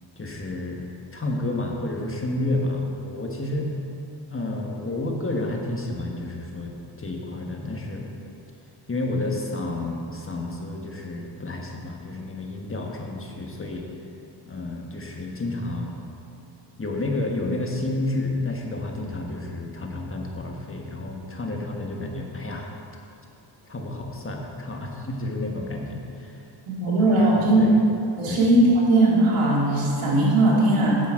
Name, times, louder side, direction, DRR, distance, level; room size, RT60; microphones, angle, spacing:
voice 1, 0.2-0.8 1.1-3.7 4.3-8.0 8.9-13.8 14.4-15.9 16.8-22.7 23.7-26.4 26.9-27.8 28.3-28.5, left 2 dB, 25° left, 0 dB, 1.3 m, -30 dB
voice 2, 26.7-27.7 28.2-31.0, right 1 dB, 85° right, -4 dB, 2.5 m, -19 dB
8.9 x 8.2 x 4.8 m, 2.7 s
cardioid pair, 85°, 48 cm